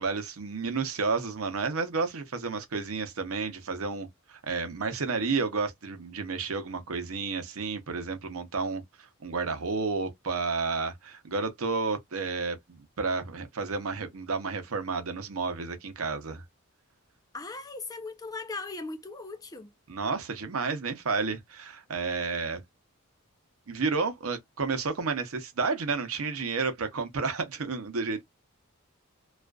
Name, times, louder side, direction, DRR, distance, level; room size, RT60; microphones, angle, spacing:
voice 1, 0.0-16.4 19.9-22.6 23.7-28.2, right 4 dB, 75° right, 0.7 m, -31 dB
voice 2, 17.3-19.7, left 3 dB, 15° left, 0.4 m, -38 dB
2.4 x 2.3 x 2.3 m
head